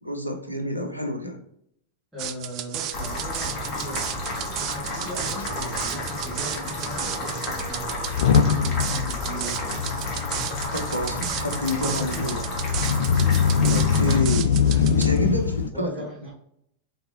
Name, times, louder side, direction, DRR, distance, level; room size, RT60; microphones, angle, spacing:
voice 1, 0.0-1.4 10.7-12.4 13.7-14.6 15.0-16.1, left 1 dB, 90° right, 4 dB, 0.6 m, -28 dB
voice 2, 2.1-9.7 11.7-12.4 14.6-15.2 15.7-16.3, equal, 5° right, -10 dB, 1.6 m, -38 dB
sound 1, 2.2-15.2, right 10 dB, 40° right, 0.3 m, -34 dB
sound 2, 2.9-14.2, left 1 dB, 30° left, 1.4 m, -32 dB
Motor vehicle (road) / Engine starting / Accelerating revving vroom, 5.4-5.5 5.7-5.9 6.6-6.7 7.9-15.7, left 7 dB, 60° left, 0.4 m, -23 dB
4.0 x 3.6 x 2.8 m, 0.73 s
figure-of-eight pair, 90°, 0 cm